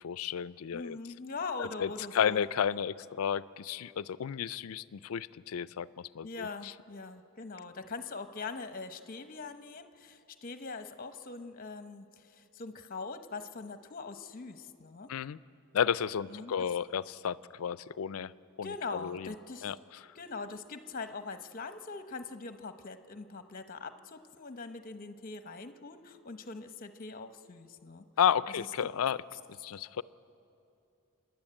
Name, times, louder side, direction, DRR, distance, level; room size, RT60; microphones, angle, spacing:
voice 1, 0.0-1.0 1.6-6.7 15.1-15.4 15.7-18.3 18.6-19.3 19.6-19.8 28.2-29.2 29.6-30.0, left 8 dB, 75° left, 18 dB, 0.4 m, -32 dB
voice 2, 0.7-2.5 6.2-15.1 16.3-16.5 18.6-19.7 20.1-28.1 28.6-28.7, left 4 dB, 40° left, 9 dB, 0.8 m, -42 dB
28.5 x 10.5 x 8.9 m, 2.7 s
head